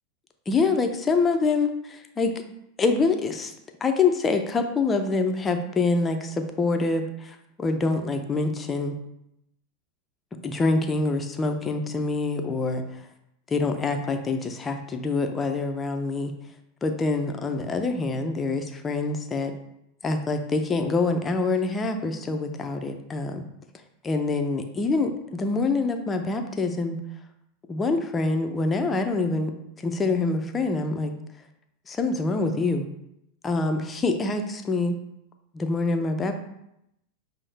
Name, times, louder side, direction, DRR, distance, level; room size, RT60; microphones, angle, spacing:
voice 1, 0.5-2.3 2.8-3.5 3.8-8.9 10.4-13.0 13.5-16.3 16.8-19.5 20.0-23.4 24.0-27.0 27.7-29.5 29.8-31.1 31.9-32.9 33.4-35.0 35.5-36.4, left 3 dB, 20° left, 6 dB, 0.5 m, -25 dB
5.3 x 2.1 x 3.3 m, 0.81 s
hypercardioid pair, 105°, 0 cm